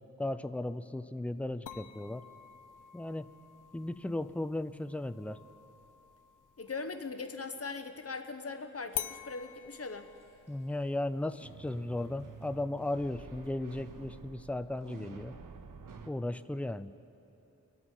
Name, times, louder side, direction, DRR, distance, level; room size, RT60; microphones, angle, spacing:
voice 1, 0.2-2.2 2.9-3.3 3.7-5.4 10.5-15.3 16.1-16.9, left 1 dB, 5° left, 12 dB, 0.4 m, -36 dB
sound 1, 1.7-7.2 8.9-13.9, left 10 dB, 80° left, 0.5 m, -48 dB
voice 2, 6.6-10.1, left 4 dB, 50° left, 8 dB, 0.9 m, -40 dB
sound 2, 8.9-9.0 10.2-10.6 11.4-16.1, right 5 dB, 85° right, 0.7 m, -50 dB
25.0 x 8.5 x 4.5 m, 2.9 s
wide cardioid pair, 65°, 31 cm